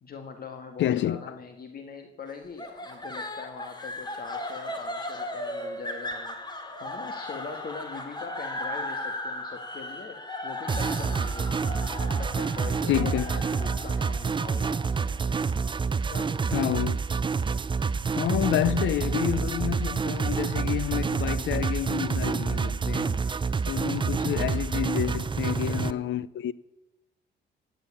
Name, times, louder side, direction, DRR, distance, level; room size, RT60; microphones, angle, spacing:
voice 1, 0.0-6.4 6.8-11.7 12.0-14.7 16.1-16.7 25.3-26.1, left 5 dB, 50° left, 1.6 m, -42 dB
voice 2, 0.8-1.2 12.9-13.3 16.5-17.0 18.2-23.2 23.7-26.5, left 12 dB, 70° left, 0.7 m, -29 dB
sound 1, 2.6-15.7, left 1 dB, 20° left, 2.5 m, -37 dB
sound 2, 10.7-25.9, right 5 dB, 25° right, 0.5 m, -28 dB
16.0 x 9.3 x 8.5 m
cardioid pair, 90°, 20 cm